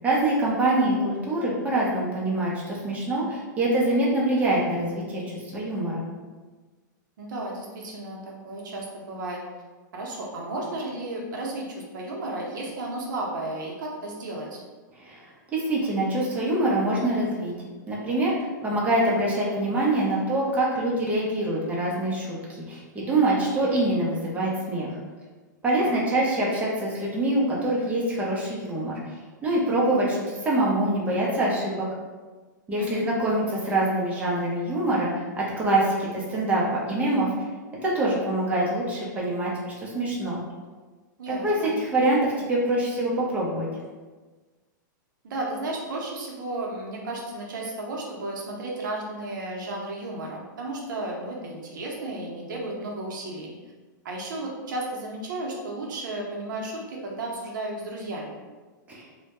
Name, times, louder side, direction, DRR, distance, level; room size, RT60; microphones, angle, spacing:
voice 1, 0.0-5.2 5.5-6.0 15.0-15.2 15.5-17.5 17.9-24.9 25.6-29.0 29.4-31.9 32.7-37.3 37.8-40.4 41.3-43.7 58.9-59.0, right 1 dB, 15° right, -5 dB, 0.6 m, -25 dB
voice 2, 7.2-9.4 9.9-14.6 25.8-26.0 32.8-33.0 41.2-41.7 45.2-53.5 54.0-58.4, right 2 dB, 70° right, -2 dB, 0.6 m, -33 dB
2.1 x 2.1 x 2.9 m, 1.3 s
hypercardioid pair, 125°, 11 cm